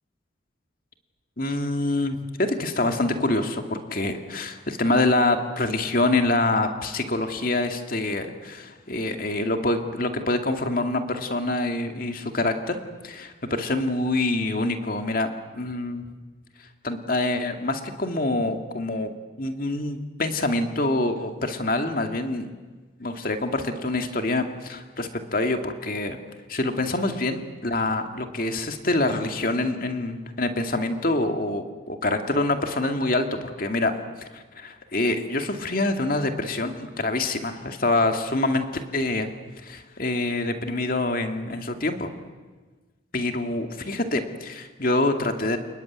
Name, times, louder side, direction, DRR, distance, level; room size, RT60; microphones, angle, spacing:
voice 1, 1.4-16.0 16.8-19.1 19.4-22.5 23.0-26.2 26.5-33.9 34.2-39.3 39.6-42.1 43.1-45.6, left 2 dB, 45° left, 5 dB, 2.2 m, -26 dB
29.5 x 20.5 x 9.5 m, 1.3 s
head